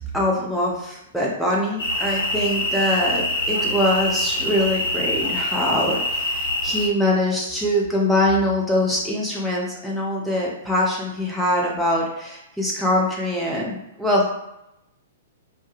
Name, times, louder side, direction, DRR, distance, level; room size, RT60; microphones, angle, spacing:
voice 1, 0.1-14.4, left 1 dB, ahead, -5 dB, 0.6 m, -23 dB
sound 1, 1.8-6.9, left 1 dB, 50° left, 0.7 m, -25 dB
2.2 x 2.1 x 2.9 m, 0.86 s
figure-of-eight pair, 110°, 0 cm